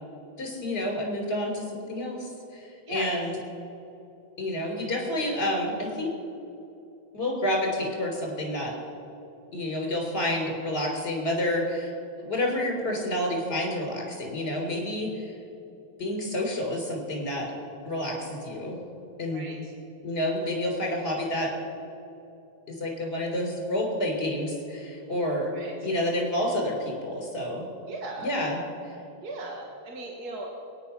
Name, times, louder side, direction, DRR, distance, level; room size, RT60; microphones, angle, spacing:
voice 1, 0.4-3.3 4.4-6.1 7.1-8.7 9.5-11.9 12.2-15.3 16.0-17.5 17.8-18.8 19.2-19.5 20.0-21.5 22.7-27.7 28.2-28.9, left 1 dB, 30° left, -1 dB, 4.2 m, -29 dB
voice 2, 19.3-19.7 25.5-25.8 27.9-28.3 29.2-30.5, right 2 dB, 50° right, 0 dB, 1.9 m, -38 dB
22.0 x 9.9 x 5.8 m, 2.9 s
omnidirectional pair, 2.2 m